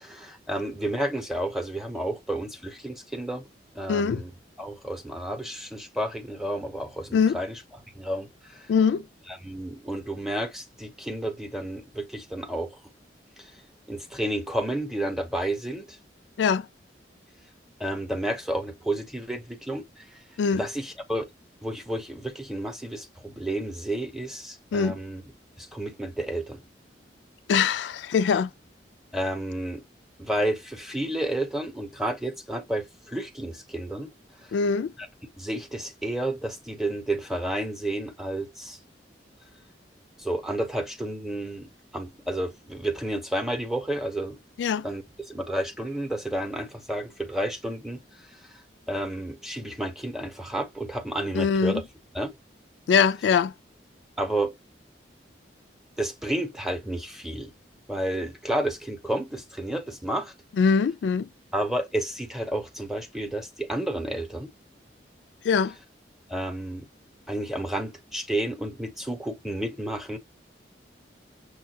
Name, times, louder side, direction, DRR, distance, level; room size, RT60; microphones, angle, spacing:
voice 1, 0.0-3.5 3.8-4.3 4.6-7.5 8.0-8.7 9.3-12.8 13.4-13.5 13.9-16.0 17.8-20.2 20.5-21.3 21.6-25.2 25.6-26.6 29.1-29.8 30.2-34.1 34.4-34.5 35.3-38.8 40.2-44.4 44.8-48.0 48.9-51.8 52.1-52.3 54.2-54.6 56.0-57.5 57.9-60.3 61.5-64.5 66.3-66.9 67.3-70.2, right 1 dB, ahead, 0.7 m, -31 dB
voice 2, 3.9-4.2 7.1-7.4 8.7-9.0 16.4-16.7 20.4-20.6 24.7-25.0 27.5-28.5 34.5-34.9 44.6-44.9 51.3-51.8 52.9-53.5 60.6-61.3 65.4-65.8, left 6 dB, 80° left, 0.3 m, -22 dB
6.3 x 2.2 x 2.7 m
head